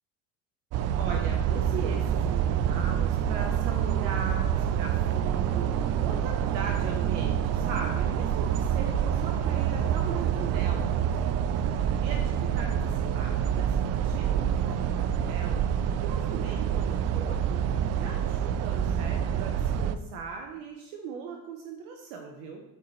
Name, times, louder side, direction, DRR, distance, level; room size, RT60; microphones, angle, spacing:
sound 1, 0.7-20.0, right 9 dB, 50° right, 0.5 m, -27 dB
voice 1, 0.9-11.1 11.7-17.6 17.9-22.6, right 5 dB, 90° right, 2 dB, 1.0 m, -39 dB
12.5 x 4.5 x 3.2 m, 0.90 s
cardioid pair, 120°, 31 cm